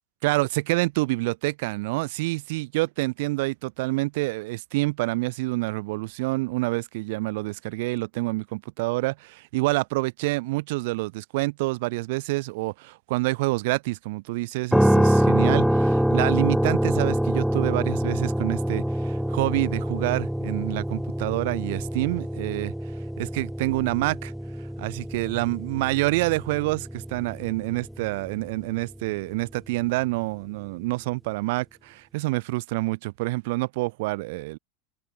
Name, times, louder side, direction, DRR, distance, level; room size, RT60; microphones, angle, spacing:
voice 1, 0.2-22.7 23.2-24.3 24.8-34.6, right 22 dB, 60° right, 2.1 m, -27 dB
sound 1, 14.7-28.7, equal, ahead, 0.5 m, -25 dB
supercardioid pair, 165°, 0 cm